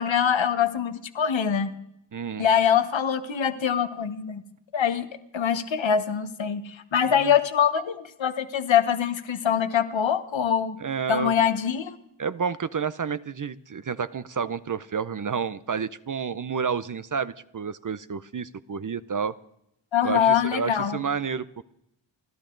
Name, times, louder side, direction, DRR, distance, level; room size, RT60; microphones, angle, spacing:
voice 1, 0.0-1.7 2.4-4.4 4.7-5.1 5.3-10.8 11.1-11.9 19.9-21.0, left 8 dB, 75° left, 11 dB, 1.3 m, -24 dB
voice 2, 2.1-2.5 7.2-7.3 10.8-11.4 12.2-19.3 20.0-21.6, right 6 dB, 45° right, 15 dB, 0.6 m, -30 dB
30.0 x 12.0 x 3.9 m, 0.80 s
wide cardioid pair, 90°, 46 cm